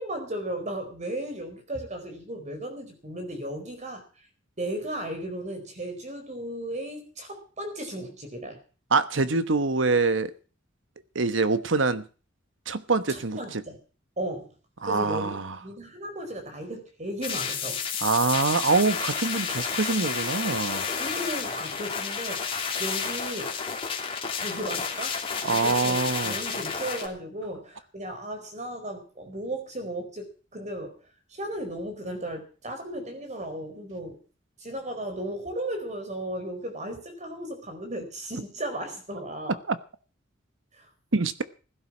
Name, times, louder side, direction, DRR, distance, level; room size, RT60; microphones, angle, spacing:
voice 1, 0.0-4.0 4.6-8.6 13.1-13.8 14.2-14.5 14.8-17.8 20.9-23.6 24.4-25.2 25.5-26.0 26.2-30.9 31.3-34.2 34.6-39.6 40.7-40.9, right 1 dB, 35° right, 4.7 m, -35 dB
voice 2, 8.9-10.3 11.1-12.0 12.7-13.6 14.8-15.6 18.0-20.9 25.4-26.4 39.7-39.8 41.1-41.4, right 3 dB, 70° right, 1.2 m, -25 dB
sound 1, 17.2-27.1, left 6 dB, 30° left, 2.9 m, -31 dB
16.0 x 12.0 x 6.2 m
head